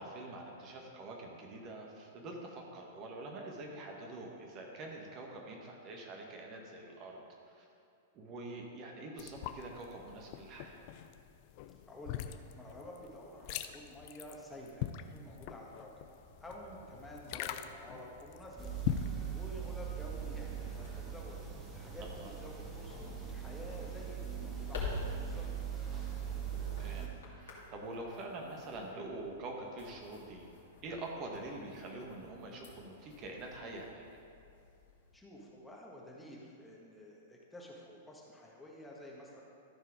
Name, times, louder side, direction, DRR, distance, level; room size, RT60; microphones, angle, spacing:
voice 1, 0.0-7.7 8.1-10.9 16.6-16.8 22.0-22.3 26.5-27.1 27.4-30.5 30.8-34.0, right 2 dB, 40° right, 0 dB, 1.4 m, -45 dB
sound 1, 9.2-19.1, left 12 dB, 50° left, 0.5 m, -42 dB
voice 2, 11.9-12.2 12.5-14.9 15.1-16.0 16.4-18.7 19.3-21.4 21.7-25.4 35.1-39.4, left 1 dB, 10° left, -3 dB, 1.6 m, -50 dB
sound 2, 16.0-35.2, left 4 dB, 70° left, 2.5 m, -50 dB
sound 3, 18.6-27.1, right 8 dB, 20° right, 1.6 m, -41 dB
14.0 x 4.7 x 4.9 m, 2.5 s
hypercardioid pair, 105°, 0 cm